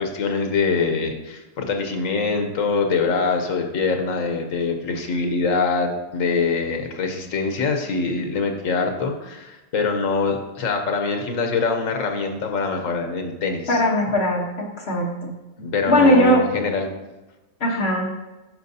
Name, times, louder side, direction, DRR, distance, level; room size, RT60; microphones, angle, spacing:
voice 1, 0.0-13.8 15.6-16.9, left 4 dB, 90° left, 4 dB, 1.3 m, -24 dB
voice 2, 13.7-14.4 14.8-15.3 15.9-16.4 17.6-18.1, equal, 55° left, -1 dB, 1.4 m, -18 dB
10.5 x 4.7 x 2.7 m, 1.0 s
omnidirectional pair, 1.3 m